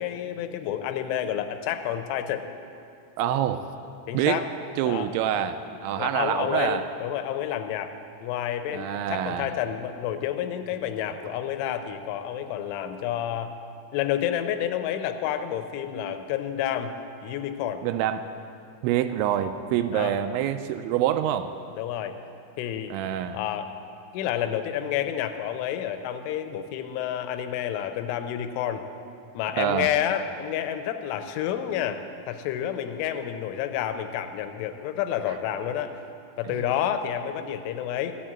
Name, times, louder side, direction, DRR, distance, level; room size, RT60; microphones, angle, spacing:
voice 1, 0.0-2.4 4.1-4.5 4.9-5.1 6.0-7.9 8.2-13.5 13.9-16.9 17.2-17.8 19.9-20.1 21.8-22.2 22.6-22.9 23.3-23.7 24.1-28.8 29.3-36.0 36.4-38.1, left 10 dB, 85° left, 8 dB, 3.1 m, -29 dB
voice 2, 3.2-3.6 4.1-4.4 4.8-6.8 8.7-9.5 17.8-18.2 18.8-21.5 22.9-23.4 29.6-29.9 35.3-35.4, right 10 dB, 85° right, 9 dB, 2.7 m, -26 dB
14.5 x 7.4 x 8.7 m, 2.5 s
omnidirectional pair, 5.5 m